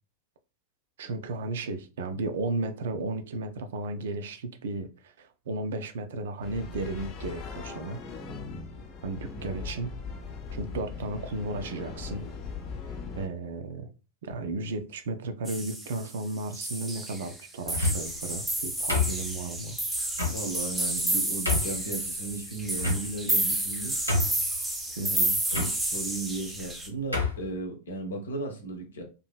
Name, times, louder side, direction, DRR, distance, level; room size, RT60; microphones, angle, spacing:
voice 1, 1.0-8.0 9.0-9.9 10.5-12.3 13.2-13.9 14.2-19.8 25.0-25.4, right 2 dB, 60° right, 0.4 m, -34 dB
sound 1, 6.4-13.3, left 5 dB, 35° left, 0.6 m, -39 dB
sound 2, 15.5-16.2 16.5-17.4 17.7-26.9, right 1 dB, 5° right, 0.6 m, -30 dB
sound 3, 17.6-18.2 18.9-19.6 20.2-20.4 21.0-21.1 21.4-21.8 22.8-23.3 23.7-23.8 24.1-24.5 25.5-25.7 26.6-26.7 27.1-27.4, left 3 dB, 90° left, 1.0 m, -27 dB
voice 2, 20.2-24.0 25.5-29.0, right 2 dB, 65° left, 0.7 m, -36 dB
2.8 x 2.6 x 2.2 m
figure-of-eight pair, 90°, 0 cm